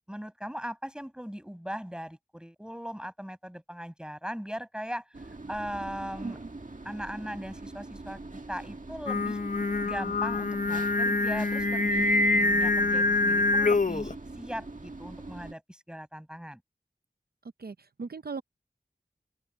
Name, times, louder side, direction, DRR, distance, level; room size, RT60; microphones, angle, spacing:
voice 1, 0.1-5.0 5.5-6.4 6.8-9.4 9.8-16.6, equal, 5° right, 5.8 m, -39 dB
sound 1, 5.1-15.5, right 2 dB, 55° right, 1.9 m, -43 dB
Singing, 9.1-14.1, left 2 dB, 50° left, 0.7 m, -25 dB
voice 2, 17.6-18.4, right 4 dB, 75° right, 0.6 m, -38 dB
open air
wide cardioid pair, 55°, 16 cm